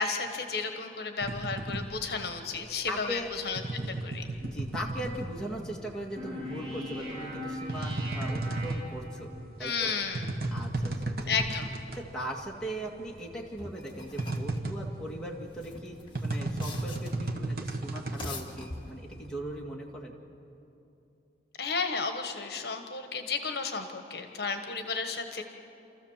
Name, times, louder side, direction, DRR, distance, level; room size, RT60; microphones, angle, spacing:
voice 1, 0.0-3.6 3.9-4.3 9.6-10.3 11.3-11.7 21.6-25.4, left 5 dB, 60° left, 6 dB, 1.3 m, -33 dB
sound 1, 1.2-5.9 6.2-12.1 12.4-12.5 12.8-19.3, right 2 dB, 55° right, 1.4 m, -34 dB
voice 2, 2.9-3.3 4.4-9.3 9.6-9.9 10.5-11.3 12.0-20.1, right 1 dB, 5° left, -3 dB, 2.0 m, -39 dB
sound 2, 6.2-9.4, left 1 dB, 30° right, 4.6 m, -39 dB
sound 3, 13.6-14.6 15.5-17.3 18.0-19.3, left 2 dB, 30° left, 1.8 m, -43 dB
27.5 x 14.0 x 7.4 m, 2.8 s
head